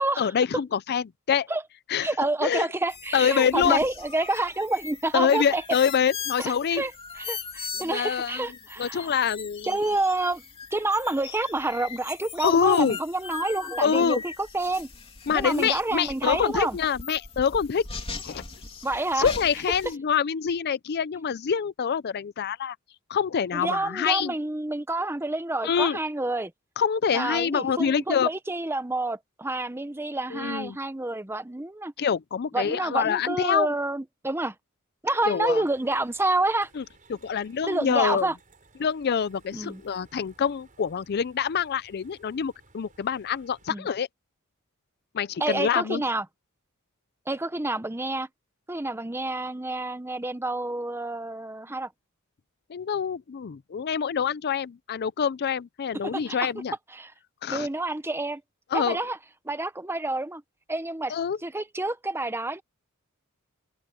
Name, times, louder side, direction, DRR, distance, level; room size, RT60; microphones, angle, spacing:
voice 1, 0.2-1.5 1.9-2.1 2.4-2.7 3.1-3.8 5.1-6.8 7.8-8.5 8.8-9.8 12.4-13.0 13.8-14.2 15.3-17.9 18.2-18.4 19.1-22.8 23.1-24.3 25.6-26.0 26.8-28.3 30.3-30.8 32.0-33.7 35.3-35.6 36.8-36.9 37.1-38.3 38.8-44.1 45.1-46.0 52.7-56.7 57.4-57.7 58.7-59.0 61.1-61.4, left 7 dB, 50° left, 0.4 m, -25 dB
voice 2, 2.0-5.6 6.4-6.9 7.2-9.1 9.7-10.4 10.7-14.9 15.3-16.8 18.8-19.3 23.5-26.5 27.1-31.9 32.5-34.5 35.0-36.7 37.6-38.3 39.5-39.8 43.7-43.9 45.4-46.2 47.3-48.3 48.7-51.9 56.0-56.4 56.9-57.1 57.5-58.4 58.7-59.2 59.4-60.4 60.7-61.1 61.4-62.6, right 2 dB, 10° right, 0.8 m, -28 dB
sound 1, 2.9-20.0, left 5 dB, 25° left, 3.1 m, -40 dB
sound 2, 35.3-43.7, right 3 dB, 40° right, 5.2 m, -59 dB
open air
head